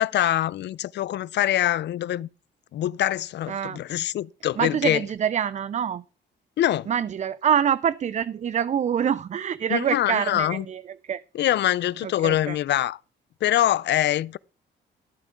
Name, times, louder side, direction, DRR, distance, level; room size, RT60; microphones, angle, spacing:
voice 1, 0.0-2.3 2.7-5.0 6.6-6.9 9.7-10.6 11.4-13.0 13.4-14.4, left 13 dB, 60° left, 0.5 m, -24 dB
voice 2, 3.5-3.8 4.6-6.0 6.9-11.2 12.0-12.6, right 8 dB, 35° right, 0.4 m, -26 dB
13.0 x 8.9 x 3.6 m
cardioid pair, 90°, 20 cm